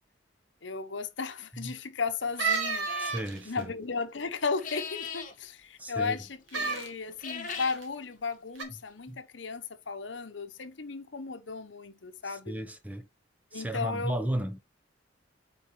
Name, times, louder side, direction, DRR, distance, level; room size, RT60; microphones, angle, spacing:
voice 1, 0.6-2.9 3.5-12.5 13.5-14.2, left 4 dB, 75° left, 0.9 m, -35 dB
sound 1, 2.4-3.6 6.5-6.9 7.5-7.8 8.5-8.6, right 5 dB, 90° right, 2.0 m, -31 dB
sound 2, 2.9-3.3 4.5-5.3 7.1-7.8, left 6 dB, 45° left, 1.4 m, -39 dB
voice 2, 3.0-3.7 5.8-6.2 9.1-9.2 12.2-13.1 13.5-14.6, right 1 dB, 10° right, 0.8 m, -34 dB
8.7 x 4.2 x 3.1 m
head